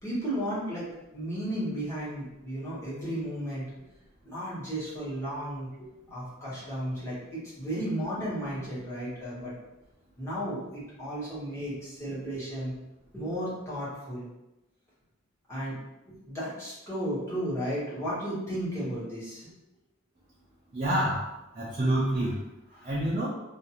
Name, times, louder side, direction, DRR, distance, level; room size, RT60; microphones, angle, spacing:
voice 1, 0.0-0.9 1.1-3.8 4.2-9.5 10.2-12.8 13.1-14.3 15.5-15.8 16.1-19.5, equal, 15° left, -9 dB, 1.1 m, -34 dB
voice 2, 20.7-22.4 22.7-23.3, right 1 dB, 35° right, -4 dB, 0.4 m, -28 dB
2.5 x 2.4 x 2.9 m, 0.96 s
head